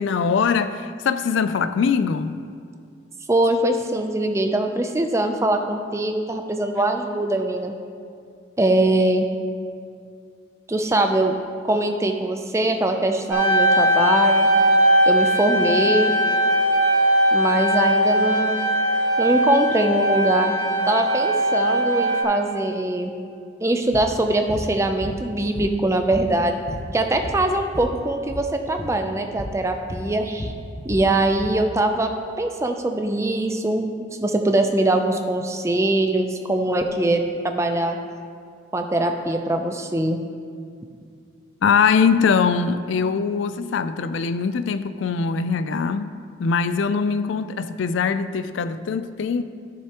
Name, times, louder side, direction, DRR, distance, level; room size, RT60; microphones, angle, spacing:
voice 1, 0.0-2.4 41.6-46.1 46.4-49.4, left 5 dB, 75° left, 0.4 m, -22 dB
voice 2, 3.3-7.7 8.6-9.3 10.7-11.4 11.7-14.5 15.1-16.1 17.3-18.6 19.2-20.5 20.9-23.1 23.6-26.6 26.9-30.5 30.8-32.1 32.4-33.9 34.2-38.0 38.7-40.2, right 1 dB, 15° right, 0.4 m, -22 dB
sound 1, 13.3-22.2, equal, 90° right, 1.9 m, -19 dB
sound 2, 23.9-24.1 24.5-24.7 25.0-25.9 26.1-27.9 28.2-28.5 28.8-29.0 29.4-29.6 29.9-31.6, left 1 dB, 35° left, 0.8 m, -33 dB
14.0 x 6.6 x 2.9 m
head